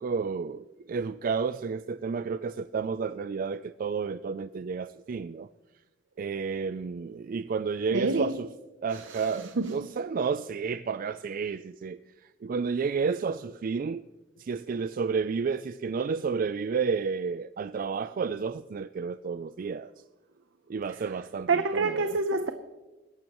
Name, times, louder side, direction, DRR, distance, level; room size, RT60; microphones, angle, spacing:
voice 1, 0.0-5.5 6.2-8.5 8.8-12.0 12.4-14.0 14.4-19.9 20.7-22.2, right 5 dB, 45° right, 0.3 m, -31 dB
voice 2, 7.9-8.3 8.9-9.3 9.6-9.7 21.5-22.5, right 3 dB, 85° right, 0.7 m, -27 dB
21.0 x 11.5 x 3.0 m
head